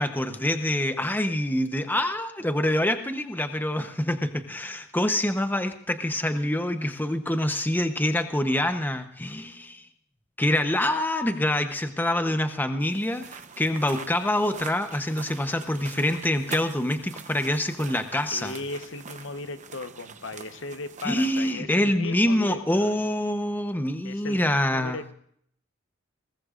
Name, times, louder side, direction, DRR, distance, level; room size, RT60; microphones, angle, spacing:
voice 1, 0.0-9.8 10.4-18.5 21.0-25.0, left 1 dB, 10° left, 8 dB, 0.8 m, -26 dB
sound 1, 12.8-21.5, right 6 dB, 40° right, 0.8 m, -43 dB
voice 2, 18.3-22.9 24.0-25.1, left 3 dB, 70° left, 10 dB, 1.1 m, -37 dB
22.0 x 19.5 x 2.5 m, 0.65 s
head